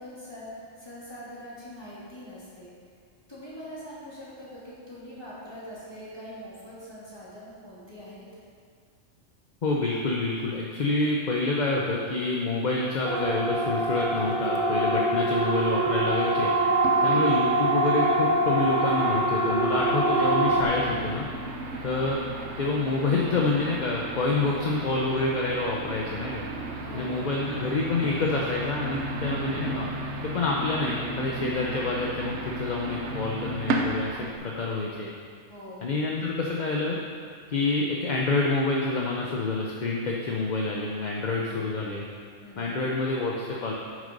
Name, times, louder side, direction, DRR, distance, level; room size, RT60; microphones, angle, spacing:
voice 1, 0.0-2.7 3.3-8.2 14.8-15.2 16.9-17.2 21.7-22.0 26.8-27.3 29.2-29.5 35.5-35.9 41.4-41.8 42.4-42.7, equal, 20° left, -9 dB, 2.7 m, -43 dB
voice 2, 9.6-16.5 17.0-21.3 21.8-22.2 22.6-26.4 26.9-29.9 30.2-35.1 35.8-37.0 37.5-42.0 42.6-43.7, left 3 dB, 40° left, -2 dB, 0.8 m, -27 dB
Siren, 13.0-20.6, right 2 dB, 45° right, 1.1 m, -24 dB
sound 1, 16.8-34.4, right 2 dB, 65° right, 1.1 m, -35 dB
9.0 x 6.4 x 5.4 m, 2.1 s
omnidirectional pair, 1.3 m